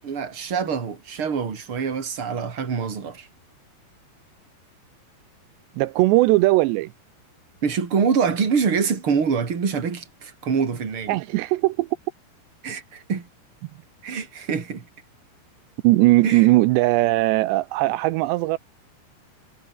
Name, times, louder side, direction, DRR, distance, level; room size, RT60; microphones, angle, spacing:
voice 1, 0.0-3.3 7.6-11.2 12.6-13.3 14.0-14.9 16.2-16.5, right 6 dB, 30° right, 3.7 m, -25 dB
voice 2, 5.8-6.9 11.1-11.9 15.8-18.6, right 19 dB, 85° right, 2.9 m, -19 dB
omnidirectional pair, 5.0 m